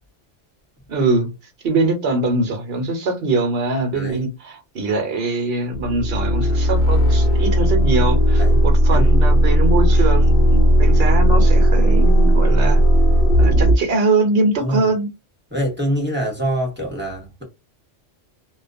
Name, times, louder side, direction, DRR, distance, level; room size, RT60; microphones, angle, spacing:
voice 1, 0.9-1.3 1.6-12.8 13.4-15.1, right 3 dB, 60° right, 1.0 m, -22 dB
voice 2, 3.9-4.3 8.4-8.6 8.9-9.1 14.6-14.8 15.5-17.4, equal, 10° right, 1.1 m, -24 dB
sound 1, 5.7-13.8, equal, 60° left, 0.8 m, -15 dB
2.4 x 2.3 x 2.4 m
omnidirectional pair, 1.2 m